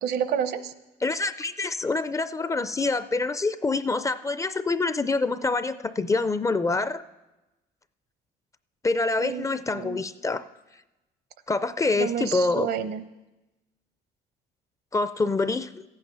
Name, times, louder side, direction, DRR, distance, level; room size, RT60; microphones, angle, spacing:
voice 1, 0.0-0.7 9.2-10.0 12.0-13.1, right 8 dB, 75° right, 12 dB, 0.8 m, -29 dB
voice 2, 1.0-7.0 8.8-10.4 11.5-12.7 14.9-15.7, left 3 dB, 20° left, 13 dB, 0.4 m, -26 dB
14.5 x 8.9 x 5.5 m, 1.0 s
cardioid pair, 110°, 17 cm